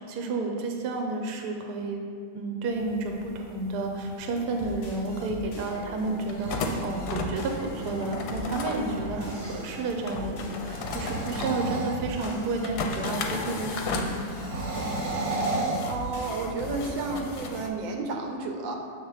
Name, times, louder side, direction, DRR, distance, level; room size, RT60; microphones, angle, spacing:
voice 1, 0.0-2.0 2.3-14.3, right 3 dB, 70° right, 2 dB, 1.2 m, -31 dB
sound 1, 2.7-17.7, left 3 dB, 70° left, 1.0 m, -37 dB
sound 2, 4.4-17.3, left 1 dB, 45° left, 0.8 m, -41 dB
sound 3, 6.2-9.9 10.7-12.7 14.3-16.6, right 2 dB, 45° right, 0.9 m, -34 dB
voice 2, 15.8-18.8, right 3 dB, 85° right, 2 dB, 1.3 m, -32 dB
6.5 x 3.3 x 4.8 m, 2.2 s
omnidirectional pair, 2.0 m